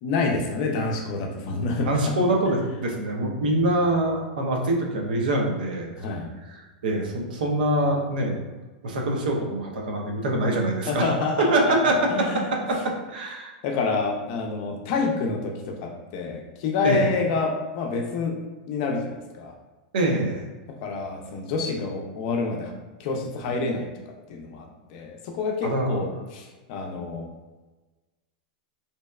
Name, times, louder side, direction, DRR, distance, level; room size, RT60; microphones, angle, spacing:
voice 1, 0.0-1.9 6.0-6.3 10.9-11.5 12.1-12.4 13.6-18.4 18.7-19.5 20.8-22.7 23.0-23.9 24.3-27.3, left 4 dB, 55° left, 2 dB, 0.4 m, -27 dB
voice 2, 1.9-6.1 6.5-8.5 8.8-11.1 11.4-12.3 12.7-13.5 16.8-17.0 19.9-20.5 25.6-26.0, right 1 dB, 85° right, 1 dB, 0.5 m, -24 dB
2.7 x 2.1 x 2.2 m, 1.2 s
supercardioid pair, 135°, 5 cm